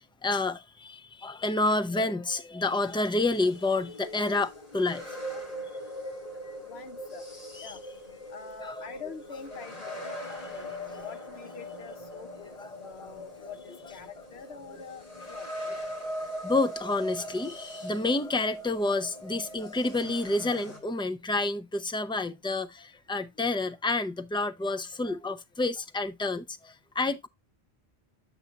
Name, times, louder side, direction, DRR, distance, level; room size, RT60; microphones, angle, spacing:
voice 1, 0.2-5.1 5.3-5.4 7.6-7.7 8.6-8.8 12.6-13.1 16.4-27.3, left 2 dB, 10° left, 0.3 m, -29 dB
sound 1, 2.8-20.8, equal, 35° left, 2.5 m, -41 dB
voice 2, 6.6-7.3 7.6-7.8 8.3-12.5 12.8-15.5, left 6 dB, 75° left, 1.0 m, -45 dB
8.1 x 7.9 x 2.4 m
omnidirectional pair, 1.1 m